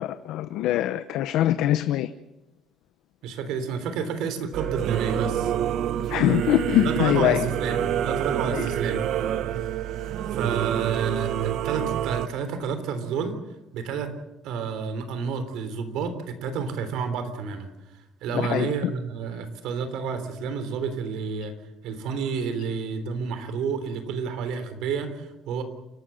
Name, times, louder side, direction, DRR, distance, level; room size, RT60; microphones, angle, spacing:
voice 1, 0.0-2.1 6.1-7.5 8.5-8.6 18.3-18.7, left 13 dB, 75° left, 0.8 m, -23 dB
voice 2, 3.2-5.5 6.8-9.0 10.3-13.3 13.7-14.1 14.4-17.7 18.2-21.5 21.8-25.6, right 6 dB, 75° right, 3.4 m, -30 dB
Singing / Musical instrument, 4.5-12.3, right 10 dB, 60° right, 0.9 m, -27 dB
29.0 x 13.0 x 7.7 m
cardioid pair, 155°, 0 cm